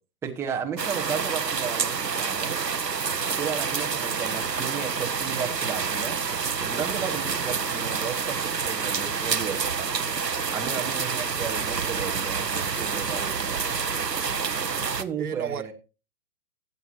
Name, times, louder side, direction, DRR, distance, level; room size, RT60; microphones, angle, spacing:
voice 1, 0.2-2.5 3.4-6.2 6.6-9.9 10.5-13.8 15.0-15.7, right 7 dB, 5° right, 0.9 m, -34 dB
sound 1, 0.8-15.0, right 5 dB, 90° right, 0.9 m, -28 dB
voice 2, 13.0-13.4 15.2-15.7, right 7 dB, 65° right, 1.0 m, -35 dB
16.0 x 8.1 x 2.7 m
figure-of-eight pair, 120°, 48 cm